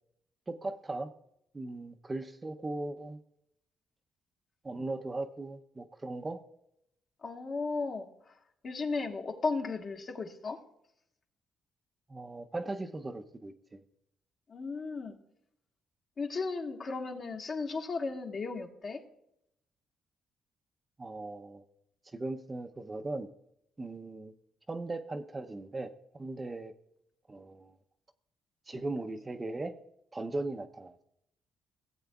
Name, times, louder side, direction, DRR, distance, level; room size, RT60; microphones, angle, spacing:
voice 1, 0.5-1.1 1.5-3.2 4.6-6.4 12.1-13.8 21.0-21.6 22.1-23.3 23.8-24.3 24.7-26.7 27.3-27.8 28.7-29.7 30.1-31.0, right 2 dB, 25° right, 6 dB, 0.6 m, -38 dB
voice 2, 7.2-8.1 8.6-10.6 14.5-15.2 16.2-19.0, left 4 dB, 50° left, 2 dB, 1.5 m, -35 dB
17.5 x 8.0 x 2.3 m, 0.77 s
cardioid pair, 90°, 0 cm